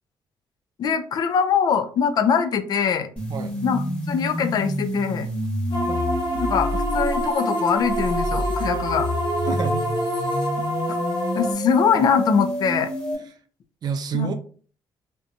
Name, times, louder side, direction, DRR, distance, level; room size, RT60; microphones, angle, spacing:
voice 1, 0.8-3.1 3.6-5.3 6.4-9.1 11.3-12.9 14.1-14.3, left 6 dB, 55° left, 9 dB, 0.4 m, -22 dB
sound 1, 3.2-13.2, equal, 15° left, 1.0 m, -28 dB
sound 2, 5.7-11.5, equal, 75° left, 0.7 m, -27 dB
voice 2, 9.4-9.9 13.8-14.3, right 6 dB, 60° right, 8 dB, 0.4 m, -28 dB
2.6 x 2.2 x 2.6 m, 0.43 s
cardioid pair, 100°, 8 cm